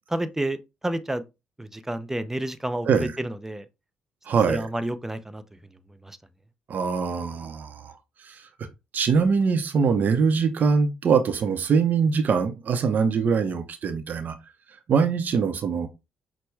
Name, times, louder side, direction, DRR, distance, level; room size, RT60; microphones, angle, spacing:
voice 1, 0.1-0.6 0.8-1.2 1.6-3.6 4.5-5.4 6.0-6.2, right 1 dB, 10° right, 0.6 m, -29 dB
voice 2, 2.9-3.2 4.3-4.7 6.7-8.0 8.2-8.4 8.9-14.3 14.9-15.9, right 5 dB, 55° right, 0.7 m, -23 dB
6.0 x 2.2 x 3.3 m
supercardioid pair, 60°, 3 cm